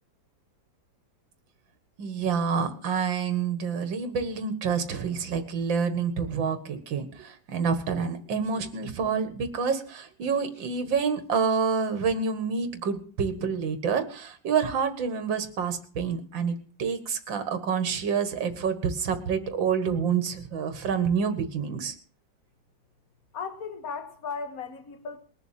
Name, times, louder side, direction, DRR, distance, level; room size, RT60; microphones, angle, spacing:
voice 1, 2.0-21.9, right 6 dB, 75° right, 2.4 m, -28 dB
voice 2, 23.3-25.2, left 5 dB, 50° left, 2.1 m, -36 dB
21.0 x 7.1 x 7.5 m
omnidirectional pair, 2.1 m